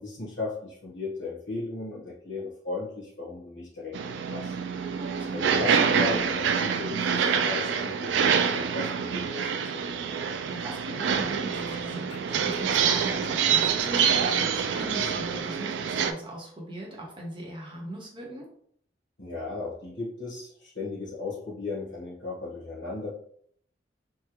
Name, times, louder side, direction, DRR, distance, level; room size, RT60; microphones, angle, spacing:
voice 1, 0.0-4.5 5.3-10.0 19.2-23.1, left 3 dB, 80° left, -5 dB, 1.1 m, -36 dB
sound 1, 3.9-16.1, right 7 dB, 70° right, 0.3 m, -26 dB
voice 2, 5.0-5.4 10.5-18.5, right 1 dB, 30° right, -2 dB, 0.9 m, -39 dB
Scratching (performance technique), 11.5-14.3, left 2 dB, 30° left, 0.4 m, -47 dB
3.5 x 2.2 x 3.0 m, 0.63 s
head